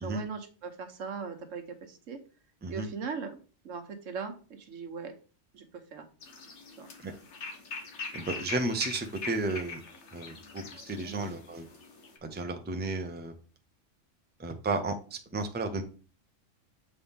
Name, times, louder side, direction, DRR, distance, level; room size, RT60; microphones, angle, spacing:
voice 1, 0.0-2.2 2.7-3.4 3.6-5.1 5.5-6.1 6.8-6.9 11.0-11.3, right 5 dB, 85° right, 6 dB, 1.3 m, -39 dB
sound 1, 6.2-12.2, left 4 dB, 65° left, 1.4 m, -42 dB
voice 2, 8.1-9.8 10.1-11.7 12.2-13.3 14.4-15.8, right 2 dB, 10° right, 5 dB, 0.5 m, -33 dB
7.2 x 4.2 x 3.5 m, 0.38 s
omnidirectional pair, 1.3 m